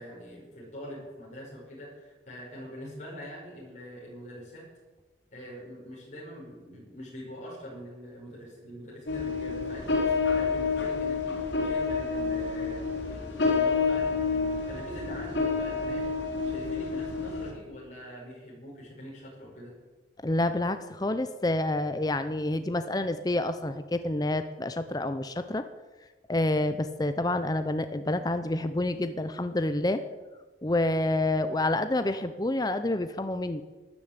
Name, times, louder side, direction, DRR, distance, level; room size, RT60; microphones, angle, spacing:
voice 1, 0.0-4.6 5.3-19.7, equal, 40° left, -6 dB, 5.6 m, -44 dB
sound 1, 9.1-17.5, left 4 dB, 85° left, 3.9 m, -29 dB
voice 2, 20.2-25.6 26.3-30.0 30.6-33.6, left 1 dB, 20° left, 10 dB, 0.6 m, -28 dB
12.5 x 11.0 x 8.9 m, 1.3 s
head